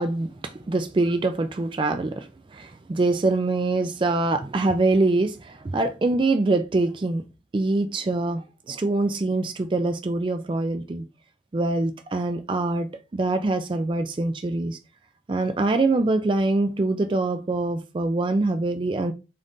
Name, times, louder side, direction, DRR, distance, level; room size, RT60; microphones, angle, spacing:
voice 1, 0.0-7.2 7.5-11.0 11.5-14.8 15.3-19.1, right 2 dB, 25° right, 0.3 m, -24 dB
3.7 x 2.7 x 3.5 m
head